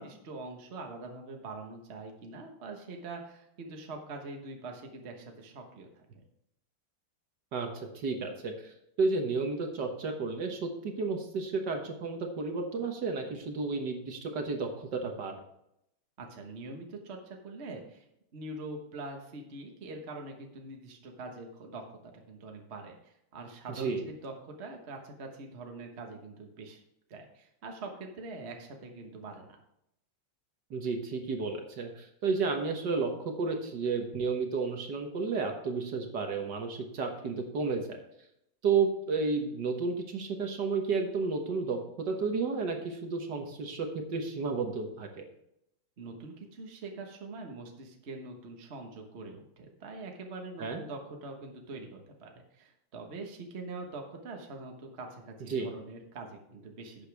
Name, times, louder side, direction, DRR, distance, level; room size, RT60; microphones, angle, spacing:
voice 1, 0.0-6.2 16.2-18.0 18.3-26.8 27.1-29.6 46.0-57.1, right 3 dB, 35° right, 2 dB, 1.3 m, -44 dB
voice 2, 7.9-15.3 23.8-24.0 30.7-38.0 38.6-45.2 50.6-50.8 55.5-55.7, right 4 dB, 55° right, 4 dB, 1.7 m, -32 dB
11.5 x 8.2 x 3.5 m, 0.79 s
omnidirectional pair, 2.4 m